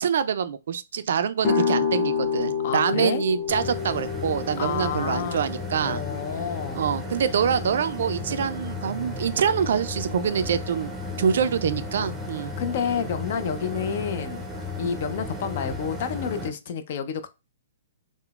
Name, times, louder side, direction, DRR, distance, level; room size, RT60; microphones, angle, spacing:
voice 1, 0.0-6.0 6.7-10.9 11.2-12.5, right 7 dB, 70° right, 0.3 m, -25 dB
sound 1, 1.4-7.2, left 6 dB, 35° left, 0.8 m, -29 dB
voice 2, 2.6-3.2 4.6-5.4 5.8-6.8 12.6-14.4 14.8-17.3, left 7 dB, 55° left, 0.4 m, -29 dB
sound 2, 3.5-16.5, left 2 dB, 10° right, 0.5 m, -34 dB
3.7 x 2.0 x 2.3 m
hypercardioid pair, 140°, 0 cm